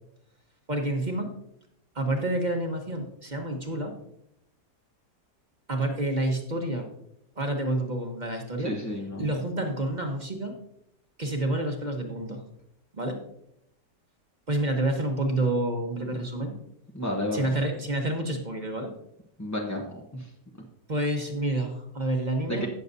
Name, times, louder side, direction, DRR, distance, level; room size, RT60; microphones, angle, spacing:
voice 1, 0.7-1.3 1.9-3.9 5.7-6.9 7.4-8.7 9.2-10.6 11.2-12.4 12.9-13.2 14.5-16.5 17.3-18.9 20.9-22.7, right 1 dB, 30° right, 3 dB, 1.0 m, -28 dB
voice 2, 8.6-9.3 16.9-17.5 19.4-19.8 20.1-20.3 22.5-22.7, left 1 dB, 15° left, -1 dB, 0.6 m, -31 dB
17.5 x 6.7 x 2.7 m, 0.76 s
omnidirectional pair, 1.8 m